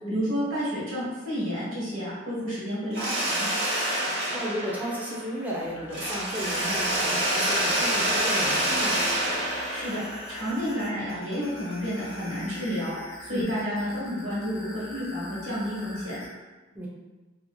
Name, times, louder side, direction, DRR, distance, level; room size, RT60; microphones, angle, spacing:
voice 1, 0.1-3.5 9.7-10.0 10.3-13.0 13.2-16.2, equal, 90° right, -8 dB, 1.2 m, -30 dB
Mechanisms, 2.9-5.5 5.9-10.8, right 1 dB, 60° right, 1.1 m, -27 dB
voice 2, 4.3-9.1 13.3-13.5 16.7-16.9, equal, 10° right, -5 dB, 0.5 m, -34 dB
sound 1, 5.6-16.3, left 1 dB, 90° left, 0.6 m, -44 dB
2.8 x 2.6 x 2.3 m, 1.2 s
head